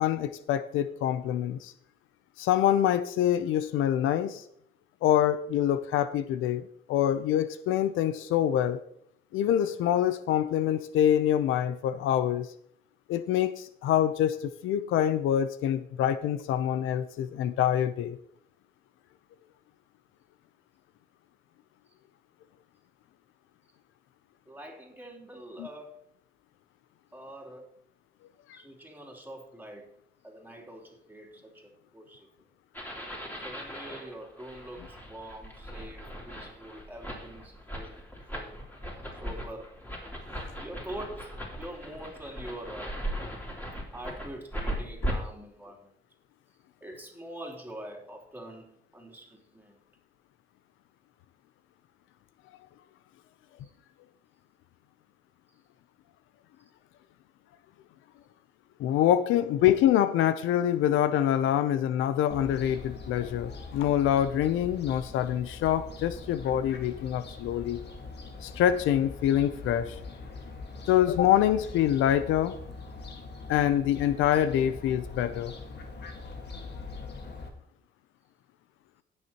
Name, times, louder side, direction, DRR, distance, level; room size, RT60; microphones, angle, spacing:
voice 1, 0.0-1.7 2.4-4.4 5.0-8.8 9.3-12.5 13.1-18.2 25.6-25.7 58.8-67.8 68.4-70.0 70.9-72.6 73.5-75.5, left 11 dB, 90° left, 13 dB, 0.6 m, -25 dB
voice 2, 24.5-25.9 27.1-27.6 28.5-29.9 30.2-32.3 33.4-37.9 38.3-38.5 39.2-39.7 40.6-43.0 43.9-45.9 46.8-49.7, right 1 dB, 10° right, -1 dB, 3.2 m, -44 dB
sound 1, 32.7-45.1, equal, 10° left, 3.2 m, -38 dB
Fowl, 62.3-77.5, left 3 dB, 60° left, 1.7 m, -42 dB
19.0 x 6.5 x 3.0 m, 0.69 s
cardioid pair, 90°, 20 cm